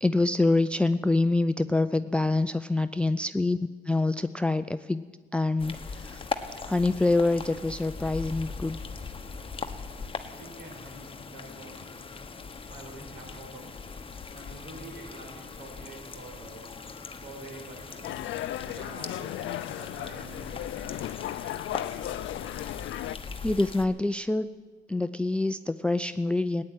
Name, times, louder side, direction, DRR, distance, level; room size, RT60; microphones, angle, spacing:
voice 1, 0.0-5.0 5.3-6.2 6.7-8.8 23.4-24.5 24.9-26.6, left 2 dB, 5° left, 13 dB, 0.4 m, -26 dB
sound 1, 5.6-23.9, left 4 dB, 25° left, 1.2 m, -40 dB
voice 2, 10.3-11.8 12.7-13.6 14.3-16.7 17.2-18.1 18.6-20.8, right 2 dB, 70° right, 1 dB, 5.4 m, -46 dB
sound 2, 18.0-23.2, left 13 dB, 75° left, 0.5 m, -35 dB
16.5 x 9.7 x 9.1 m, 1.5 s
cardioid pair, 90°, 20 cm